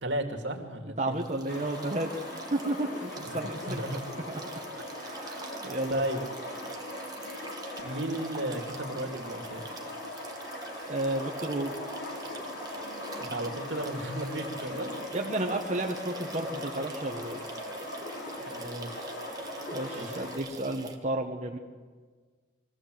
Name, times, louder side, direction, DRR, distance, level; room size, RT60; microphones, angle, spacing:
voice 1, 0.0-1.2 3.2-4.0 4.7-4.8 5.2-6.2 7.8-9.6 13.3-14.9 18.4-19.1 19.9-20.1, right 1 dB, 70° right, 3 dB, 2.5 m, -35 dB
voice 2, 1.0-3.8 4.3-4.4 5.0-6.0 10.9-11.7 15.1-17.4 19.7-21.6, right 1 dB, 35° right, 0 dB, 1.2 m, -32 dB
sound 1, 1.1-21.0, right 3 dB, 20° right, 1.3 m, -46 dB
sound 2, 1.5-20.4, left 1 dB, 70° left, 4.9 m, -40 dB
23.0 x 15.5 x 7.7 m, 1.5 s
head